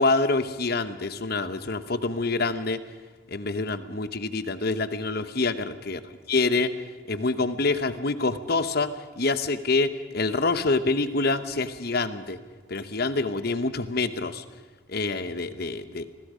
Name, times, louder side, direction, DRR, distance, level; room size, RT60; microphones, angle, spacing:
voice 1, 0.0-2.8 3.3-6.0 6.3-6.7 7.1-12.4 12.7-14.4 14.9-16.1, left 3 dB, 50° left, 12 dB, 1.0 m, -26 dB
27.0 x 20.0 x 5.1 m, 1.3 s
head